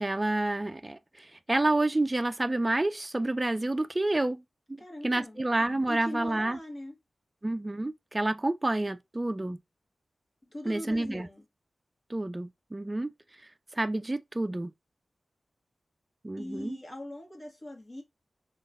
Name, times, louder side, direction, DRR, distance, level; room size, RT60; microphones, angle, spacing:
voice 1, 0.0-4.4 4.7-6.6 7.4-9.6 10.7-11.3 12.1-13.1 13.7-14.7 16.2-16.8, right 2 dB, 30° right, 0.3 m, -29 dB
voice 2, 4.8-5.4 5.9-6.9 10.4-11.4 16.4-18.0, left 1 dB, 45° left, 1.3 m, -41 dB
3.8 x 2.3 x 2.4 m
cardioid pair, 45°, 0 cm